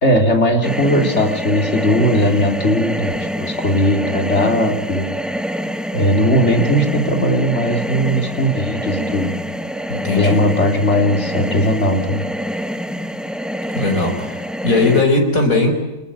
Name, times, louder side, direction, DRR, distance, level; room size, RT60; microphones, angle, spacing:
voice 1, 0.0-5.1 5.9-9.3 10.2-12.3, equal, 55° left, 3 dB, 3.6 m, -18 dB
sound 1, 0.6-15.0, equal, ahead, 1.1 m, -26 dB
voice 2, 9.9-10.4 13.8-15.7, left 2 dB, 85° left, 4 dB, 5.2 m, -18 dB
27.0 x 20.0 x 8.8 m, 1.1 s
omnidirectional pair, 1.4 m